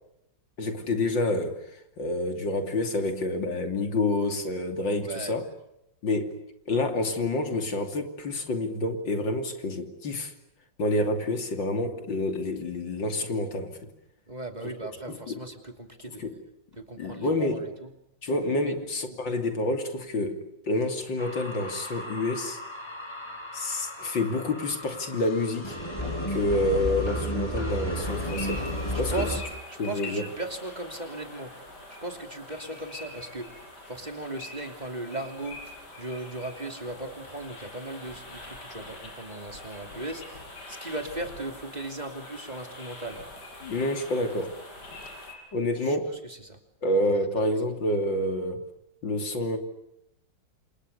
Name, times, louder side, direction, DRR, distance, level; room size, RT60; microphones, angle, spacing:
voice 1, 0.6-1.6 2.0-5.5 6.0-6.4 6.7-10.3 10.8-13.8 15.1-15.4 16.1-16.4 17.0-17.7 18.2-22.6 23.5-25.8 26.3-28.6 29.0-29.1 29.8-30.3 43.6-44.5 45.5-46.1 46.8-48.6 49.0-49.6, left 2 dB, 80° left, 6 dB, 3.6 m, -28 dB
voice 2, 5.0-5.4 14.3-16.2 16.7-17.9 18.6-19.2 29.1-31.5 32.0-33.5 33.9-35.6 36.0-43.2 45.9-46.0 46.2-46.6, right 2 dB, 20° right, 5 dB, 3.2 m, -37 dB
sound 1, 21.2-29.4, equal, 15° left, 6.0 m, -33 dB
sound 2, 28.0-45.3, left 2 dB, 65° left, 6.3 m, -44 dB
29.5 x 27.0 x 6.8 m, 0.81 s
omnidirectional pair, 2.0 m